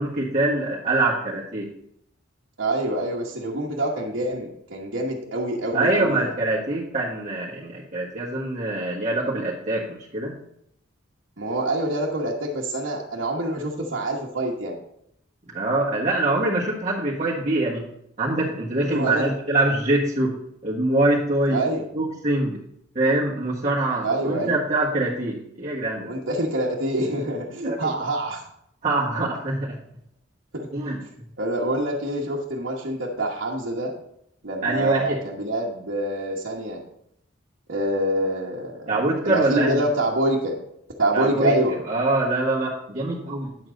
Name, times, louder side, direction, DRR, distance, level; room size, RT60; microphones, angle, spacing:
voice 1, 0.0-1.7 5.7-10.3 15.5-17.8 18.2-20.3 20.6-21.6 21.9-22.6 22.9-26.1 27.6-27.9 28.8-29.8 30.7-31.0 34.6-35.2 38.9-39.8 41.1-41.5 41.9-43.5, right 2 dB, 35° right, -7 dB, 1.5 m, -24 dB
voice 2, 2.6-6.3 11.4-14.8 18.9-19.3 21.5-21.9 24.0-24.6 26.1-28.4 30.5-30.7 31.4-33.9 34.4-36.8 37.7-40.6 41.0-41.8, right 1 dB, 70° right, -6 dB, 1.3 m, -26 dB
9.7 x 7.3 x 3.8 m, 0.74 s
head